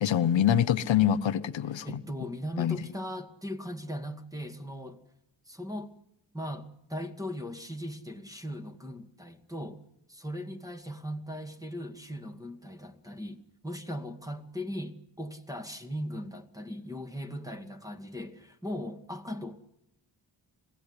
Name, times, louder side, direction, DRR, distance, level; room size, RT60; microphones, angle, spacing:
voice 1, 0.0-2.0 2.6-2.8, left 10 dB, 80° left, 0.8 m, -25 dB
voice 2, 1.8-5.0 5.5-5.9 6.3-9.8 10.1-19.6, equal, 10° right, 2.1 m, -38 dB
22.0 x 16.5 x 9.7 m
cardioid pair, 60°, 45 cm